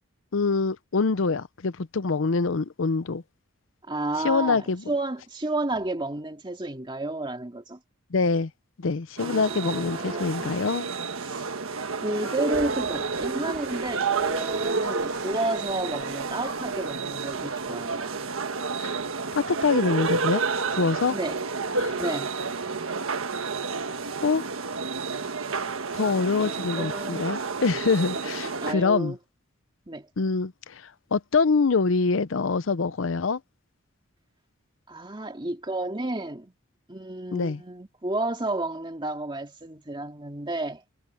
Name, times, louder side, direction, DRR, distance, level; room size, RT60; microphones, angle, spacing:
voice 1, 0.3-3.2 4.2-4.8 8.1-8.5 8.8-10.9 18.8-18.9 19.3-20.4 20.7-21.2 21.8-22.0 24.2-24.4 25.9-29.1 30.2-33.4 37.3-37.6, left 4 dB, 70° left, 0.6 m, -25 dB
voice 2, 3.9-7.8 9.2-10.5 11.2-11.5 12.0-18.1 21.1-21.4 22.0-22.3 26.4-27.3 28.2-28.3 28.6-29.2 29.9-30.1 34.9-36.5 36.9-40.8, right 2 dB, 25° right, 2.1 m, -32 dB
sound 1, 9.2-28.7, right 4 dB, 85° right, 1.4 m, -30 dB
sound 2, 12.5-18.6, right 4 dB, 55° right, 4.5 m, -48 dB
head